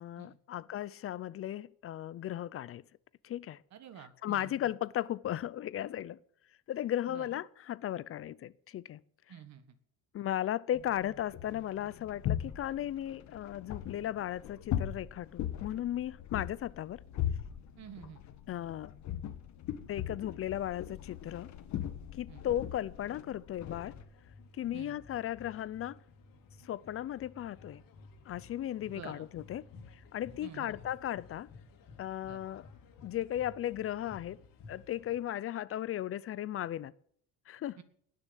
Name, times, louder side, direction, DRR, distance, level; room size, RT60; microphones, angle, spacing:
voice 1, 0.0-2.8 3.2-3.6 4.0-6.2 6.7-9.0 10.1-17.0 18.5-18.9 19.9-21.5 22.1-24.0 24.5-26.0 26.6-27.8 28.3-29.7 29.9-31.5 32.0-32.7 33.0-34.4 34.7-36.9 37.5-37.8, left 12 dB, 45° left, 0.5 m, -36 dB
voice 2, 3.7-4.5 7.1-7.3 9.3-9.8 17.8-18.2 22.3-22.4 24.7-25.0 28.9-29.3 30.4-30.7 32.3-32.4 37.8-37.9, right 9 dB, 55° right, 1.6 m, -49 dB
sound 1, 10.7-24.0, left 11 dB, 60° left, 1.5 m, -40 dB
sound 2, 23.5-35.1, left 4 dB, 85° left, 3.0 m, -55 dB
19.0 x 6.7 x 8.2 m
cardioid pair, 145°, 33 cm